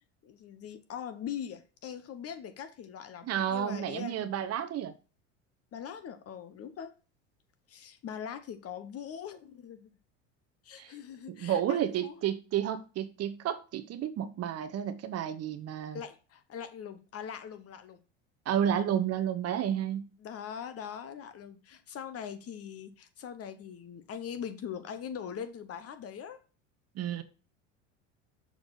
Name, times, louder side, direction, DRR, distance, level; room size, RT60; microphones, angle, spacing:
voice 1, 0.2-4.2 5.7-6.9 7.7-9.9 10.6-12.2 15.9-18.0 20.2-26.4, left 8 dB, 40° left, 1.1 m, -41 dB
voice 2, 3.2-4.9 10.8-10.9 11.4-16.0 18.5-20.1 27.0-27.2, right 10 dB, 40° right, 0.9 m, -31 dB
6.4 x 4.9 x 4.0 m
hypercardioid pair, 90°, 37 cm